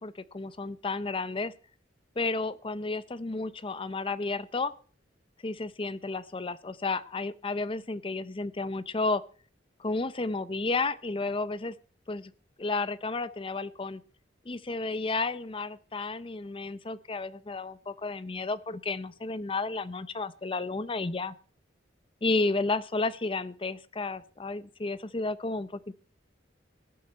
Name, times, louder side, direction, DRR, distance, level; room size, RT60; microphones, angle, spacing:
voice 1, 0.0-1.5 2.2-4.7 5.4-9.2 9.8-11.8 12.1-12.3 12.6-14.0 14.5-21.3 22.2-25.9, left 3 dB, 30° left, 16 dB, 0.6 m, -32 dB
20.0 x 7.8 x 4.3 m, 0.43 s
head